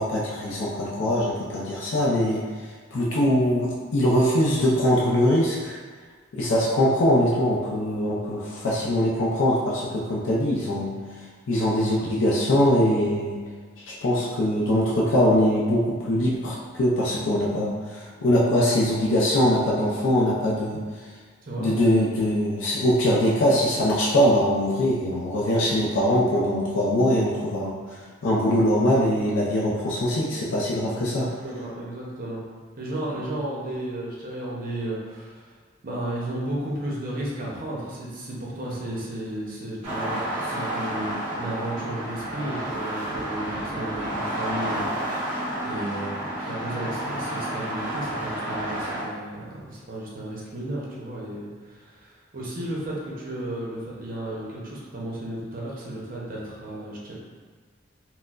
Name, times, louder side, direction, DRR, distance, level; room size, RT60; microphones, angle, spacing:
voice 1, 0.0-2.4 2.9-5.8 6.3-10.9 11.5-13.4 13.9-20.8 21.6-31.3, equal, 75° left, -5 dB, 0.5 m, -22 dB
voice 2, 30.8-32.4 32.8-35.5 35.8-44.8 45.1-57.1, right 1 dB, 45° right, -5 dB, 0.7 m, -33 dB
sound 1, 39.8-49.0, right 1 dB, 20° right, 1.1 m, -30 dB
4.2 x 2.0 x 2.4 m, 1.5 s
head